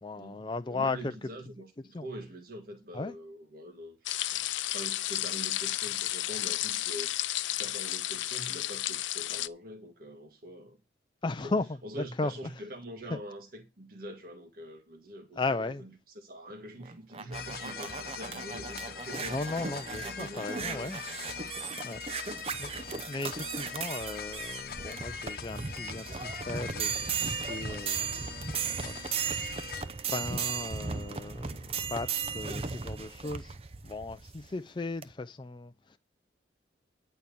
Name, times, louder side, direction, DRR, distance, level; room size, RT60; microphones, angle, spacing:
voice 1, 0.0-1.3 1.9-2.1 2.9-3.2 11.2-12.5 13.1-13.2 15.4-15.9 19.2-21.0 21.8-22.7 23.1-28.9 30.1-33.6 33.8-36.0, left 3 dB, 25° left, 0.4 m, -36 dB
voice 2, 0.7-10.8 11.4-11.5 11.8-15.9 16.2-19.4 19.9-21.0, equal, 50° right, 1.9 m, -44 dB
sound 1, 4.1-9.5, left 15 dB, 85° left, 0.5 m, -32 dB
sound 2, 16.8-34.5 35.0-35.1, right 6 dB, 30° right, 0.7 m, -36 dB
sound 3, 17.3-29.8, left 6 dB, 55° left, 1.0 m, -42 dB
10.5 x 4.5 x 6.9 m
head